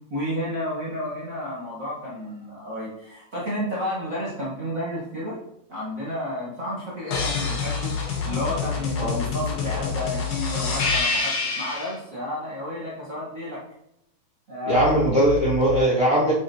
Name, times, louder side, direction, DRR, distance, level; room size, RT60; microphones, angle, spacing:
voice 1, 0.1-5.4 5.7-7.9 8.2-13.6 14.5-15.3, left 1 dB, 85° right, -6 dB, 0.7 m, -31 dB
sound 1, 7.1-11.9 14.7-15.8, left 5 dB, 65° left, 1.1 m, -27 dB
voice 2, 14.7-16.3, right 1 dB, 25° left, -8 dB, 2.2 m, -20 dB
8.9 x 5.7 x 2.9 m, 0.80 s
omnidirectional pair, 4.0 m